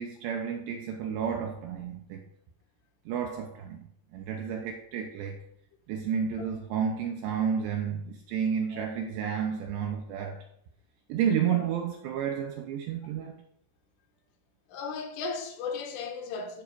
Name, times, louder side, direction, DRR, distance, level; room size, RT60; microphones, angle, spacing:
voice 1, 0.0-2.2 3.1-5.4 5.9-10.5 11.1-13.4, right 7 dB, 80° right, 2.6 m, -31 dB
voice 2, 14.7-16.6, left 4 dB, 75° left, 3.6 m, -36 dB
11.5 x 4.9 x 6.8 m
omnidirectional pair, 6.0 m